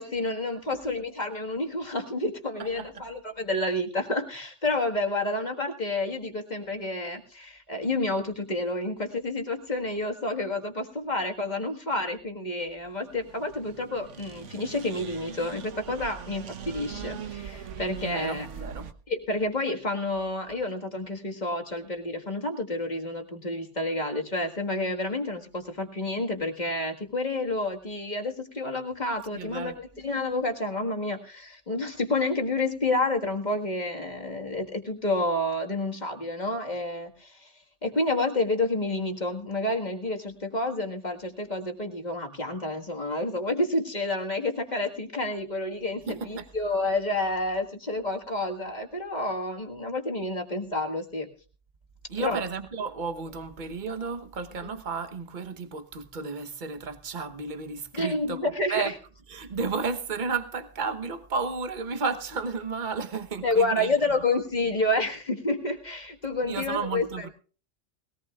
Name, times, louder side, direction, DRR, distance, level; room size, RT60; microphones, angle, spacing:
voice 1, 0.0-18.5 19.1-37.5 37.8-51.3 52.2-52.4 54.6-54.7 57.9-59.0 63.4-67.3, left 2 dB, 40° left, 1.8 m, -29 dB
sound 1, 13.0-18.9, right 7 dB, 85° right, 1.3 m, -41 dB
voice 2, 18.0-18.9 29.3-29.8 46.1-46.5 52.1-58.4 58.7-58.9 59.3-63.9 66.4-67.3, right 4 dB, 40° right, 1.2 m, -33 dB
20.5 x 17.5 x 2.4 m
omnidirectional pair, 1.2 m